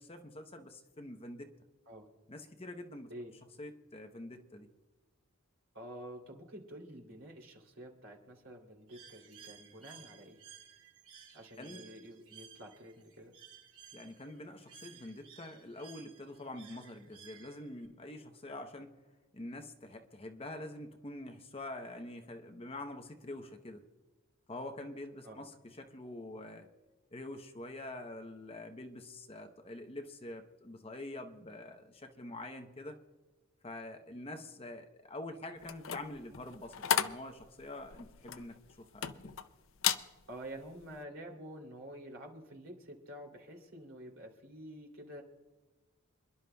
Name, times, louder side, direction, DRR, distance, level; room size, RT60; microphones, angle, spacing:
voice 1, 0.0-1.5 2.3-3.1 3.6-4.7 11.6-11.8 13.9-18.9 19.3-23.8 24.5-26.7 27.1-33.0 33.6-39.3, left 1 dB, 25° left, 5 dB, 0.8 m, -46 dB
voice 2, 5.7-10.4 11.3-13.3 25.2-25.5 40.3-45.2, right 1 dB, 60° right, 2 dB, 2.9 m, -49 dB
Bird, 8.9-17.9, right 8 dB, 85° right, 3.5 m, -56 dB
sound 1, 35.6-39.4 39.8-40.1 40.6-40.8, left 9 dB, 60° left, 0.5 m, -34 dB
27.5 x 11.0 x 2.3 m, 1.2 s
head